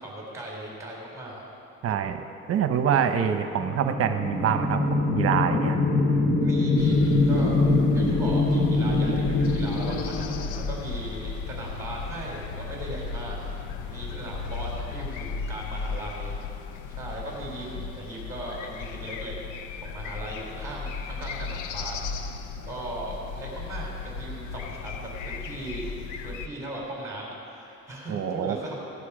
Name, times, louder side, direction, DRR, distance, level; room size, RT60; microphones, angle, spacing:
voice 1, 0.0-1.4 6.4-7.6 7.9-13.4 13.9-16.3 16.9-19.4 19.8-22.0 22.6-25.9 26.2-28.7, right 1 dB, 10° right, -3 dB, 3.9 m, -38 dB
voice 2, 1.8-2.2 2.5-4.8 5.1-5.8 28.1-28.6, right 8 dB, 50° right, 8 dB, 1.0 m, -25 dB
sound 1, 3.4-11.1, left 2 dB, 25° left, 1.1 m, -24 dB
sound 2, 6.8-26.5, left 5 dB, 85° left, 0.8 m, -35 dB
16.5 x 11.0 x 5.0 m, 2.7 s
cardioid pair, 115°, 30 cm